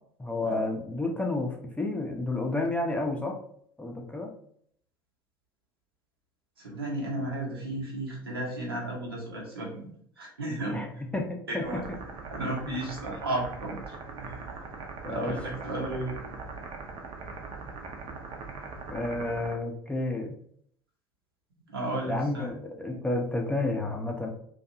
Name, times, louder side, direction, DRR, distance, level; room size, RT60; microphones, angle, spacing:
voice 1, 0.2-3.4 3.8-4.3 7.1-7.3 10.7-10.9 11.1-11.8 12.7-12.8 15.0-15.3 18.9-20.3 22.0-24.3, left 2 dB, 10° left, 1 dB, 0.5 m, -31 dB
voice 2, 6.6-9.9 10.2-10.8 11.5-11.8 12.3-14.5 15.0-16.1 21.7-22.5, right 1 dB, 85° right, -3 dB, 0.9 m, -34 dB
sound 1, 11.6-19.5, right 4 dB, 45° right, 0.6 m, -41 dB
2.6 x 2.3 x 2.6 m, 0.64 s
figure-of-eight pair, 70°, 12 cm